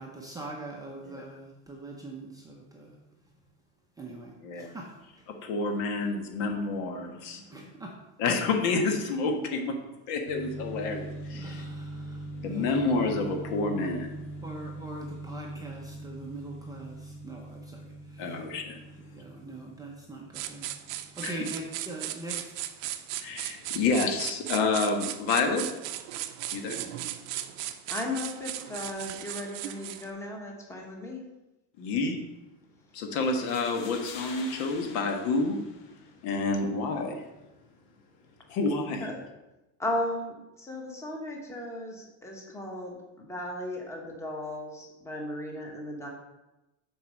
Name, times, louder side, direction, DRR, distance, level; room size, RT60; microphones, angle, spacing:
voice 1, 0.0-3.0 4.0-5.2 7.5-8.0 11.3-13.4 13.9-14.1 14.4-18.4 19.1-20.7 21.2-22.7, right 2 dB, 10° right, -2 dB, 0.6 m, -42 dB
voice 2, 5.4-7.4 8.2-9.7 10.1-11.6 12.4-14.1 18.2-18.8 21.2-21.4 23.2-25.6 26.5-26.8 31.8-32.2 32.9-35.6 36.2-37.2 38.5-39.1, left 3 dB, 60° left, 4 dB, 1.5 m, -29 dB
sound 1, 10.3-22.7, right 1 dB, 45° left, 2.9 m, -42 dB
sound 2, 20.3-30.1, right 13 dB, 65° right, 0.7 m, -37 dB
voice 3, 27.9-31.2 39.0-39.2 39.8-46.1, left 1 dB, 5° left, 0 dB, 1.2 m, -36 dB
sound 3, 33.2-36.2, left 5 dB, 90° left, 1.5 m, -46 dB
7.1 x 4.6 x 6.4 m, 0.99 s
cardioid pair, 165°, 38 cm